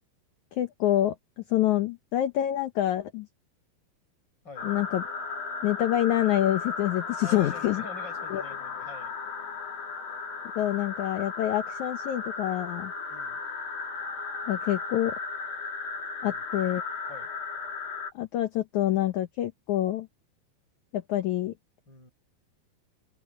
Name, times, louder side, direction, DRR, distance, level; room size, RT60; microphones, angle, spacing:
voice 1, 0.5-1.1 1.5-3.3 4.6-5.0 5.6-7.8 8.3-8.4 10.5-12.9 14.5-15.1 16.2-16.8 18.1-20.1 20.9-21.5, left 13 dB, 85° left, 1.7 m, -26 dB
sound 1, 4.6-18.1, left 5 dB, 60° left, 4.3 m, -35 dB
voice 2, 7.2-9.1 13.1-13.4 16.2-16.4 17.1-17.3 21.9-22.1, left 3 dB, 25° left, 7.1 m, -45 dB
omnidirectional pair, 4.7 m